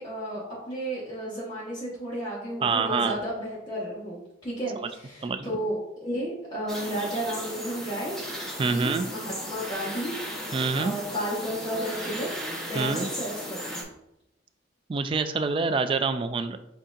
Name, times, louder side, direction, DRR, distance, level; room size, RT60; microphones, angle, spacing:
voice 1, 0.0-8.2 8.6-10.1 10.7-12.3 12.6-13.8, equal, 20° left, -10 dB, 1.3 m, -33 dB
voice 2, 2.6-3.2 4.8-4.9 5.2-5.6 8.6-9.1 10.5-10.9 12.7-13.1 14.9-16.6, right 4 dB, 30° right, 9 dB, 0.3 m, -26 dB
sound 1, 6.7-13.8, equal, 5° left, 0.8 m, -36 dB
7.7 x 2.8 x 2.4 m, 0.85 s
head